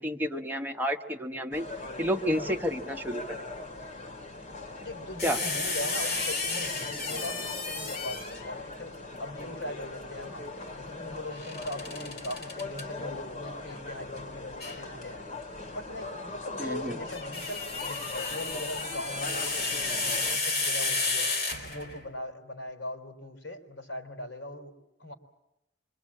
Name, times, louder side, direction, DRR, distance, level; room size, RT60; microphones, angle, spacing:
voice 1, 0.0-1.7 2.0-3.4 5.2-5.4 16.6-17.0, equal, 10° right, 3 dB, 1.2 m, -30 dB
sound 1, 1.5-20.4, left 2 dB, 40° left, 2.3 m, -40 dB
voice 2, 4.8-15.2 15.7-21.3 21.7-24.7 25.0-25.1, left 1 dB, 80° left, 5 dB, 4.0 m, -40 dB
sound 2, 5.2-8.5 11.4-12.8 14.6-14.8 16.9-22.1, left 3 dB, 55° left, 4.7 m, -32 dB
26.0 x 24.0 x 8.7 m, 0.88 s
head